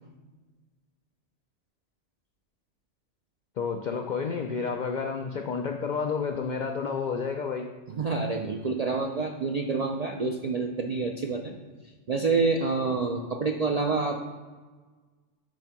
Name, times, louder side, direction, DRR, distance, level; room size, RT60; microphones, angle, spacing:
voice 1, 3.6-7.7, left 5 dB, 80° left, 3 dB, 0.4 m, -30 dB
voice 2, 7.9-11.5 12.1-14.2, right 4 dB, 65° right, 2 dB, 0.3 m, -27 dB
7.5 x 2.7 x 5.8 m, 1.4 s
omnidirectional pair, 1.3 m